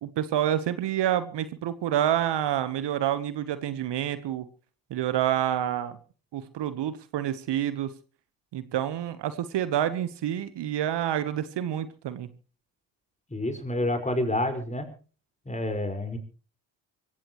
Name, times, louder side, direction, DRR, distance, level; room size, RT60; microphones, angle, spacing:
voice 1, 0.0-4.4 4.9-6.0 6.3-7.9 8.5-12.3, right 11 dB, 60° right, 13 dB, 1.3 m, -28 dB
voice 2, 13.3-14.9 15.5-16.2, left 1 dB, 15° left, 7 dB, 5.3 m, -28 dB
24.5 x 15.5 x 3.1 m, 0.38 s
hypercardioid pair, 50°, 47 cm